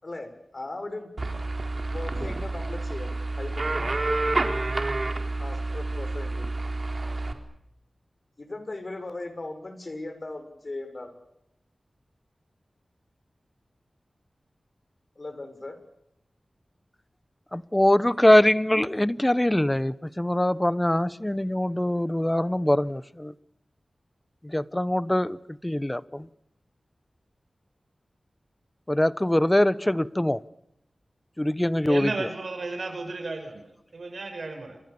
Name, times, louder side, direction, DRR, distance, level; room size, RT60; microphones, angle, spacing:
voice 1, 0.0-1.1 1.9-4.0 5.4-6.5 8.4-11.2 15.1-15.8, left 2 dB, 45° left, 6.7 m, -38 dB
sound 1, 1.2-7.3, right 2 dB, 50° right, 4.2 m, -29 dB
voice 2, 17.5-23.3 24.4-26.3 28.9-30.4 31.4-32.1, left 1 dB, 15° left, 1.0 m, -23 dB
voice 3, 31.9-34.8, right 3 dB, 75° right, 7.2 m, -34 dB
29.0 x 26.0 x 7.0 m
wide cardioid pair, 75°, 0 cm